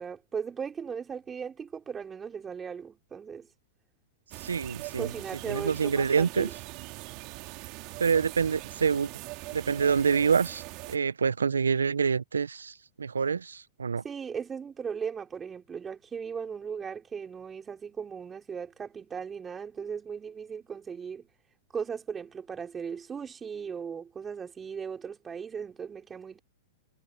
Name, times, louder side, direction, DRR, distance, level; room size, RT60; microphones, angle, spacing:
voice 1, 0.0-3.5 5.0-6.6 14.0-21.3 21.7-26.4, right 6 dB, 20° right, 5.2 m, -37 dB
sound 1, 4.3-11.0, right 26 dB, 45° right, 2.5 m, -42 dB
voice 2, 4.4-5.1 5.5-6.5 8.0-9.1 9.5-14.0, right 6 dB, 85° right, 0.6 m, -26 dB
hypercardioid pair, 105°, 0 cm